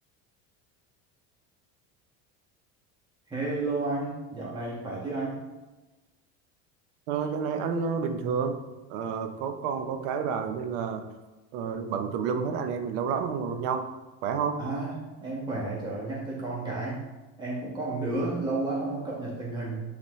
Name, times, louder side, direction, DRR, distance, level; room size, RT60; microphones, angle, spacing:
voice 1, 3.3-5.4 14.6-14.9 15.2-17.0 17.4-19.9, right 2 dB, 15° right, -7 dB, 1.6 m, -32 dB
voice 2, 7.1-8.6 8.9-11.1 11.5-13.9 14.2-14.6, right 6 dB, 70° right, 7 dB, 0.8 m, -30 dB
8.4 x 4.2 x 3.1 m, 1.1 s
supercardioid pair, 135°, 34 cm